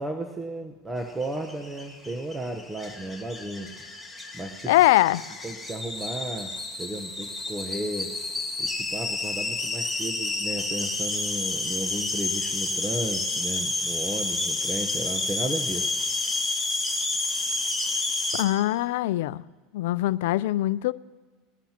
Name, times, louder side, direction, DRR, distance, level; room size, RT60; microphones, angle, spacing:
voice 1, 0.0-3.7 4.3-4.7 5.4-8.1 8.6-15.9, right 1 dB, 15° right, 1.0 m, -34 dB
sound 1, 1.1-18.4, left 2 dB, ahead, 2.0 m, -30 dB
voice 2, 4.7-5.4 18.3-19.4 19.7-20.9, left 16 dB, 80° left, 0.3 m, -22 dB
20.0 x 11.5 x 2.9 m
supercardioid pair, 110°, 0 cm